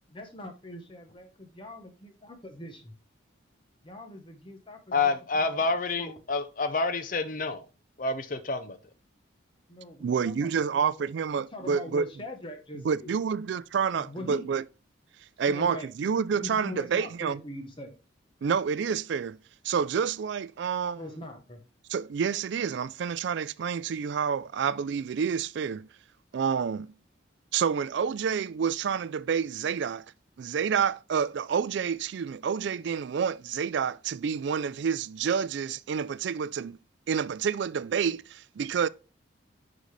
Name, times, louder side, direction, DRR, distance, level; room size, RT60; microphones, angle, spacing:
voice 1, 0.1-2.9 3.8-5.7 6.0-6.2 9.7-11.1 11.4-13.1 13.9-14.5 15.5-15.9 16.3-17.9 20.9-21.6, left 1 dB, 25° left, 0.9 m, -42 dB
voice 2, 4.9-7.6 8.0-8.8, left 3 dB, 45° left, 0.6 m, -28 dB
voice 3, 10.0-12.1 12.8-14.6 15.4-17.4 18.4-19.4 19.6-21.0 21.9-25.9 26.3-26.9 27.5-30.0 30.4-36.8 37.1-38.9, right 6 dB, 65° right, 0.3 m, -28 dB
10.0 x 3.9 x 3.2 m
head